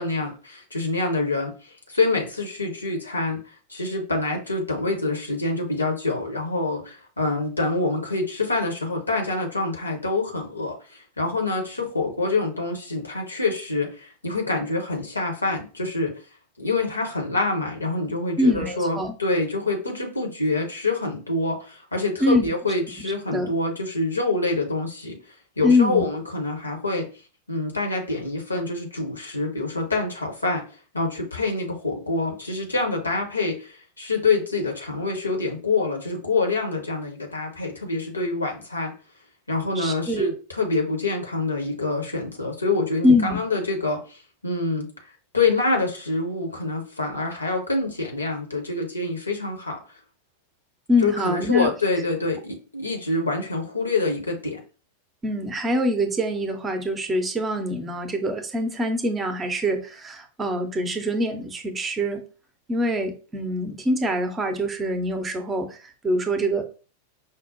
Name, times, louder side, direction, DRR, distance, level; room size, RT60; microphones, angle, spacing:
voice 1, 0.0-3.4 3.7-16.2 16.6-25.2 25.6-27.1 27.5-30.6 30.9-38.9 39.5-44.9 45.3-49.8 51.0-54.6, left 3 dB, 80° left, 2 dB, 0.9 m, -26 dB
voice 2, 18.4-19.1 22.2-22.5 23.3-23.5 25.6-26.0 39.8-40.3 43.0-43.4 50.9-51.7 55.2-62.3 62.7-66.6, left 1 dB, 20° right, 7 dB, 0.6 m, -24 dB
5.2 x 2.1 x 2.6 m, 0.35 s
figure-of-eight pair, 90°, 0 cm